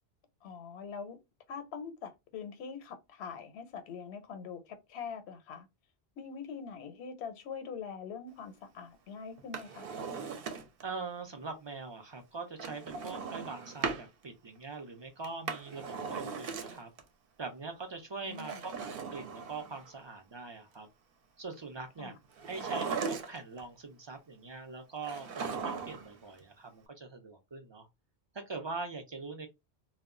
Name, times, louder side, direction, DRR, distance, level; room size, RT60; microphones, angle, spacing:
voice 1, 0.4-1.2 1.5-5.7 6.2-9.9 18.2-18.6 22.0-22.1, left 6 dB, 85° left, 0.8 m, -43 dB
Drawer open or close, 9.4-10.9 12.6-14.1 15.2-17.0 18.3-19.9 22.4-23.6 25.0-26.2 26.4-26.5, right 5 dB, 65° right, 0.7 m, -38 dB
voice 2, 10.8-16.9 17.4-20.9 21.4-22.2 22.4-27.9 28.3-29.5, right 4 dB, 50° right, 0.3 m, -43 dB
2.2 x 2.0 x 3.6 m
omnidirectional pair, 1.1 m